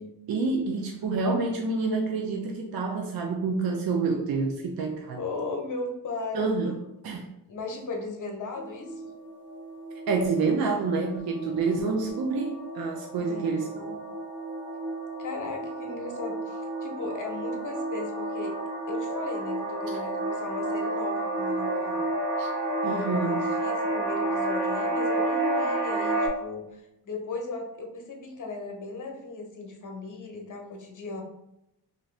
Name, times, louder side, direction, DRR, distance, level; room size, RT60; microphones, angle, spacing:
voice 1, 0.3-5.2 6.3-6.7 7.0-7.3 10.1-13.7 22.4-22.5 22.8-23.4, right 4 dB, 65° right, 1 dB, 0.5 m, -28 dB
voice 2, 5.2-6.7 7.5-9.1 13.1-14.0 15.2-18.6 18.9-22.0 22.8-23.2 23.6-31.2, left 3 dB, 50° left, 3 dB, 0.8 m, -37 dB
sound 1, 8.6-26.3, right 2 dB, 40° right, 1.4 m, -31 dB
2.7 x 2.5 x 3.1 m, 0.86 s
cardioid pair, 65°, 39 cm